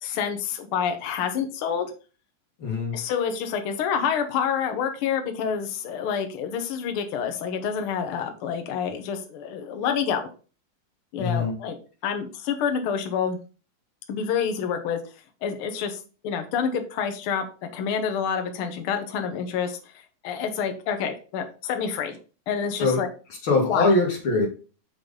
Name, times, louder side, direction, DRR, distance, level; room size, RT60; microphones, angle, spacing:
voice 1, 0.0-1.9 2.9-10.2 11.1-11.8 12.0-13.4 14.1-15.0 15.4-17.4 17.7-19.8 20.2-22.2 22.5-23.1 23.7-23.9, left 7 dB, 80° left, 6 dB, 1.2 m, -28 dB
voice 2, 2.6-3.0 11.2-11.5 22.8-23.0 23.4-24.5, left 3 dB, 50° left, 1 dB, 1.8 m, -22 dB
5.8 x 5.2 x 3.7 m, 0.35 s
omnidirectional pair, 3.8 m